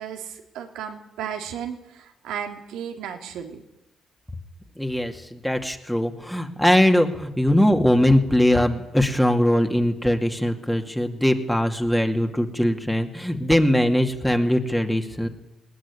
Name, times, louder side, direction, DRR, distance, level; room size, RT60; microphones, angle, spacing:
voice 1, 0.0-3.6, right 8 dB, 90° right, 5 dB, 3.3 m, -34 dB
voice 2, 4.8-15.3, left 1 dB, 5° left, 4 dB, 2.4 m, -21 dB
20.5 x 19.5 x 9.9 m, 0.89 s
cardioid pair, 90°, 0 cm